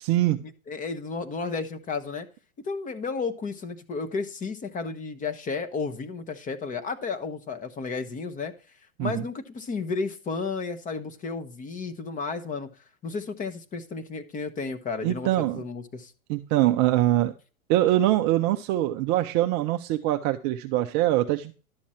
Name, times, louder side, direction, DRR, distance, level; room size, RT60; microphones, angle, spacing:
voice 1, 0.0-0.4 9.0-9.2 15.0-15.6 16.3-17.3 17.7-21.5, right 15 dB, 25° right, 0.4 m, -23 dB
voice 2, 0.7-2.3 2.6-8.5 9.0-12.7 13.0-16.1, left 4 dB, 20° left, 0.9 m, -32 dB
11.5 x 7.3 x 4.3 m
hypercardioid pair, 120°, 43 cm